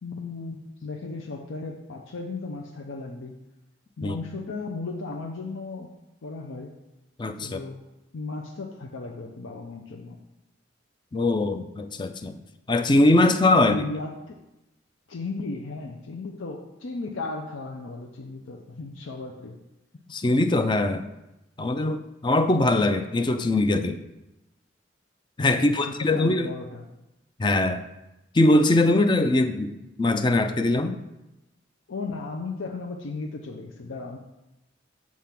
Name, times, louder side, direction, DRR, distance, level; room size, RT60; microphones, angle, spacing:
voice 1, 0.0-3.4 4.0-5.9 6.2-6.7 7.4-7.8 8.1-10.2 13.6-14.4 15.1-19.6 25.5-26.9 31.9-34.2, left 3 dB, 80° left, 2 dB, 0.6 m, -35 dB
voice 2, 7.2-7.6 11.1-12.4 12.7-13.7 20.1-21.1 21.6-24.0 25.4-26.5 27.4-27.8 28.3-29.7 30.0-31.0, left 2 dB, 25° left, 8 dB, 0.4 m, -21 dB
7.4 x 3.6 x 5.8 m, 0.95 s
head